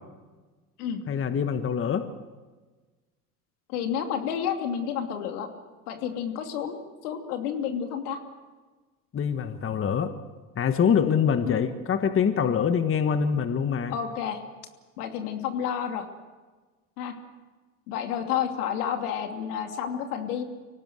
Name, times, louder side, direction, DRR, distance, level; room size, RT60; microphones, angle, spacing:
voice 1, 1.1-2.1 9.1-10.1 10.5-13.9, left 7 dB, 30° left, 9 dB, 1.5 m, -24 dB
voice 2, 3.7-5.5 5.9-8.2 11.5-11.6 13.9-14.4 15.0-16.0 17.0-17.1 17.9-20.4, left 8 dB, 75° left, 5 dB, 2.9 m, -30 dB
25.0 x 18.0 x 8.0 m, 1.3 s
hypercardioid pair, 85°, 45 cm